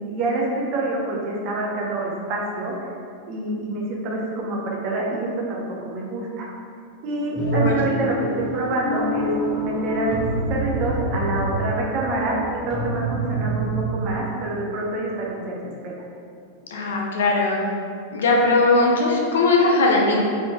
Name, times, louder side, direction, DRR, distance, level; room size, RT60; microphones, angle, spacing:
voice 1, 0.0-2.9 3.3-6.5 7.0-15.6 15.8-16.0, right 2 dB, 40° right, -2 dB, 0.8 m, -26 dB
voice 2, 7.4-8.0 16.7-17.7 18.1-20.2, left 3 dB, 60° left, -1 dB, 0.6 m, -19 dB
sound 1, 7.4-13.9, right 1 dB, 5° right, 1.2 m, -27 dB
3.9 x 3.6 x 3.1 m, 2.4 s
figure-of-eight pair, 90°, 0 cm